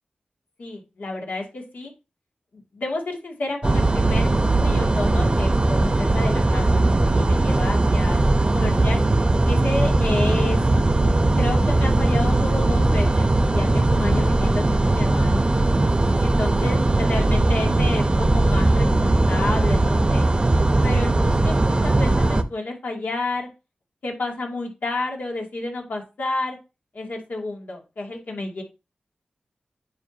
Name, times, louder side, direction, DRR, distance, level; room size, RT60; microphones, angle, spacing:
voice 1, 0.6-1.9 2.5-6.8 7.1-9.0 9.4-10.6 11.4-15.5 16.2-20.3 20.8-23.5 24.0-26.6 26.9-28.6, left 2 dB, 75° left, 0 dB, 2.5 m, -30 dB
sound 1, 3.6-22.4, right 2 dB, 35° right, 0.8 m, -19 dB
9.8 x 5.4 x 2.8 m, 0.28 s
cardioid pair, 55°, 3 cm